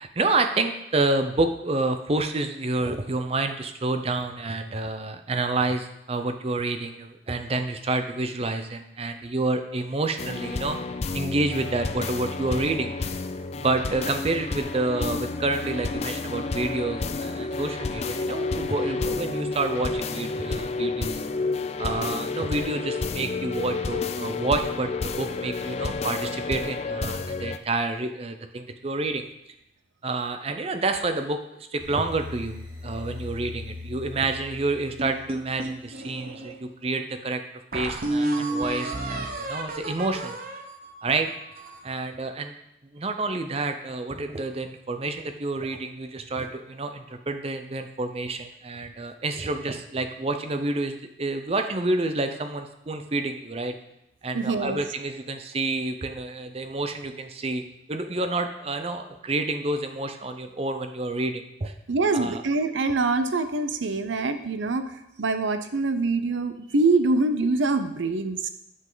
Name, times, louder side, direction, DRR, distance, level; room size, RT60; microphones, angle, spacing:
voice 1, 0.0-10.8 11.1-13.2 13.6-21.2 21.8-29.2 30.0-37.4 37.7-40.4 41.0-41.3 41.8-42.6 42.9-53.8 54.2-57.6 57.9-61.7 62.1-62.4, right 2 dB, 30° right, 7 dB, 0.5 m, -28 dB
sound 1, 10.2-27.6, left 3 dB, 35° left, 0.4 m, -30 dB
sound 2, 31.8-35.9, left 3 dB, 10° right, 2.0 m, -40 dB
sound 3, 35.0-36.5 37.1-37.2 37.7-41.9, right 2 dB, 50° right, 0.9 m, -31 dB
voice 2, 54.3-54.8 61.9-64.8 65.2-68.5, right 3 dB, 85° right, 9 dB, 0.7 m, -24 dB
9.1 x 5.3 x 3.9 m, 0.82 s
head